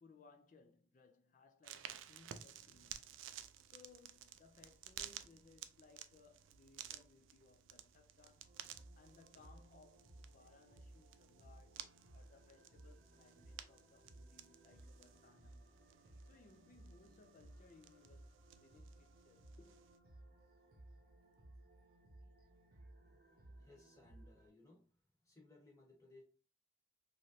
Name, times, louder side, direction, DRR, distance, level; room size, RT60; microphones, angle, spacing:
voice 1, 0.0-3.3 3.6-8.5 8.7-15.7 16.0-19.7, left 3 dB, 40° left, 0.4 m, -65 dB
sound 1, 1.6-20.0, right 11 dB, 80° right, 0.3 m, -55 dB
sound 2, 8.4-24.5, right 1 dB, 50° right, 0.7 m, -60 dB
voice 2, 23.5-24.9 25.2-26.2, left 2 dB, 15° left, 1.0 m, -63 dB
3.1 x 2.5 x 2.6 m
head